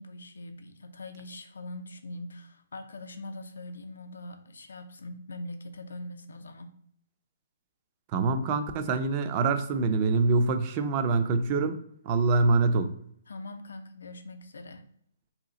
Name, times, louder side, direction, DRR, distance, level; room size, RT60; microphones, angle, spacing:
voice 1, 0.0-6.7 13.3-14.9, left 1 dB, 80° left, 7 dB, 0.5 m, -42 dB
voice 2, 8.1-11.8 12.1-12.9, right 3 dB, 35° right, 9 dB, 0.4 m, -25 dB
2.8 x 2.4 x 3.8 m, 0.66 s
hypercardioid pair, 140°, 0 cm